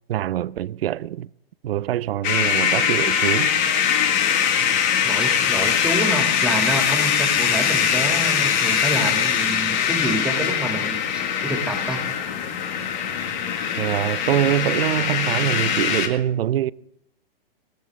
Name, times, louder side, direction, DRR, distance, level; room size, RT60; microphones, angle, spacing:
voice 1, 0.1-1.3 1.6-3.5 13.8-16.7, right 12 dB, 80° right, 0.5 m, -24 dB
sound 1, 2.2-16.1, left 8 dB, 50° left, 1.8 m, -22 dB
voice 2, 4.6-12.0, right 2 dB, 5° right, 2.3 m, -28 dB
19.0 x 13.0 x 3.6 m
hypercardioid pair, 135°, 29 cm